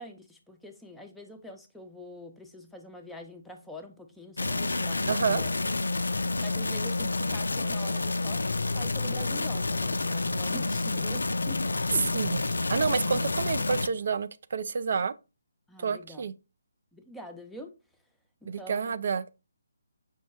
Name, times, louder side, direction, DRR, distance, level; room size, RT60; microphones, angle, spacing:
voice 1, 0.0-5.5 6.4-8.4 8.7-12.5 15.7-16.3 16.9-17.8 18.4-18.9, left 1 dB, ahead, 0.6 m, -45 dB
sound 1, 4.4-13.9, left 3 dB, 80° left, 0.3 m, -29 dB
voice 2, 5.1-5.4 12.1-12.4 12.7-15.1 15.8-16.3 18.4-19.3, right 5 dB, 55° right, 0.4 m, -29 dB
5.5 x 2.1 x 4.5 m
figure-of-eight pair, 150°, 0 cm